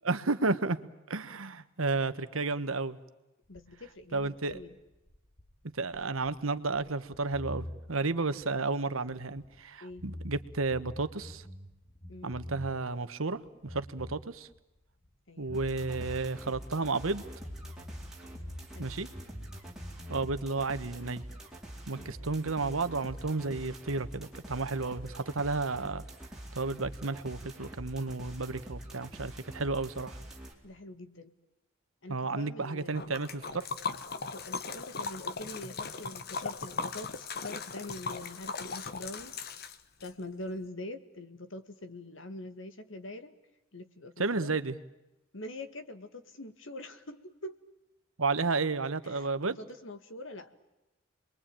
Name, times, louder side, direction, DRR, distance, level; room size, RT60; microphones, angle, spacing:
voice 1, 0.0-0.8 1.1-3.0 4.1-4.6 5.7-11.4 12.2-14.5 15.4-17.2 18.8-19.1 20.1-21.2 21.9-26.0 26.5-30.2 32.1-33.7 44.2-44.8 48.2-49.6, right 3 dB, 85° right, 12 dB, 1.3 m, -32 dB
sound 1, 3.4-9.6 9.9-13.0 13.3-15.1 15.4-18.9 19.1-20.4, left 1 dB, 35° left, 3.6 m, -46 dB
voice 2, 3.5-4.8 8.2-8.4 9.8-10.0 12.1-12.5 15.3-15.6 18.7-19.0 21.9-22.1 30.6-31.3 32.0-33.1 34.3-39.4 40.0-43.4 43.7-44.5 45.3-47.6 49.0-50.5, left 1 dB, 65° left, 10 dB, 1.9 m, -44 dB
sound 2, 15.5-30.5, right 1 dB, ahead, 4.3 m, -46 dB
Liquid, 32.9-40.1, left 4 dB, 50° left, 1.3 m, -38 dB
29.5 x 22.0 x 9.0 m, 0.99 s
head